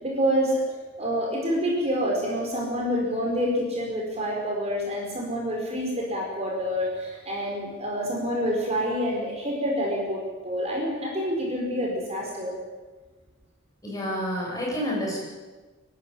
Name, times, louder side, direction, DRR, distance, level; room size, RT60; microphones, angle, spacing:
voice 1, 0.0-0.6 1.0-12.5, equal, 30° right, -1 dB, 4.8 m, -27 dB
voice 2, 13.8-15.2, equal, 15° left, -3 dB, 7.3 m, -29 dB
24.5 x 12.0 x 9.9 m, 1.3 s
head